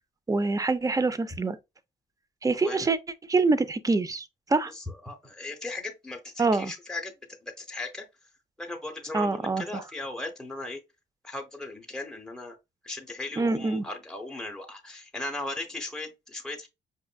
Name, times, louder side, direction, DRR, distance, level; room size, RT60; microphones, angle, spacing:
voice 1, 0.3-1.6 2.4-3.0 3.3-4.7 6.4-6.7 9.1-9.8 13.4-13.8, right 3 dB, 15° right, 0.4 m, -25 dB
voice 2, 4.7-7.1 7.4-8.1 8.6-10.8 11.2-12.6 12.8-16.7, left 2 dB, 5° left, 0.9 m, -37 dB
5.3 x 2.5 x 2.2 m
cardioid pair, 90°, 20 cm